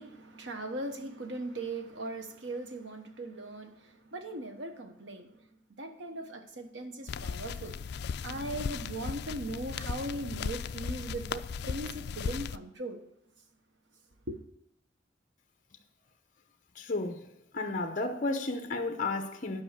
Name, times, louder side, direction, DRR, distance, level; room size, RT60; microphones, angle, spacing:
voice 1, 0.0-5.4 5.7-7.8 8.2-13.0 14.3-14.4, right 2 dB, 70° right, 1.2 m, -39 dB
sound 1, 7.1-12.6, left 6 dB, 60° left, 0.3 m, -36 dB
voice 2, 16.8-17.3 17.5-19.6, left 3 dB, 40° left, 0.9 m, -32 dB
10.5 x 5.5 x 6.7 m
head